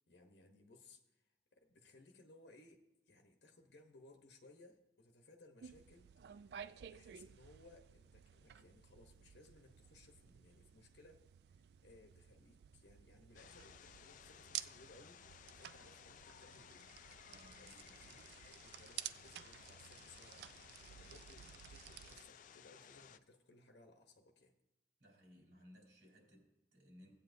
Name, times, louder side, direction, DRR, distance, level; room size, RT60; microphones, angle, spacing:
voice 1, 0.0-15.3 15.5-16.9 17.6-24.5, left 2 dB, 80° left, 4 dB, 0.9 m, -63 dB
sound 1, 5.6-22.2, right 11 dB, 65° right, 0.3 m, -53 dB
sound 2, 13.3-23.2, left 8 dB, 45° left, 0.3 m, -59 dB
voice 2, 17.3-18.1 25.0-27.2, equal, 85° right, -1 dB, 3.8 m, -62 dB
17.0 x 8.5 x 2.6 m, 1.0 s
head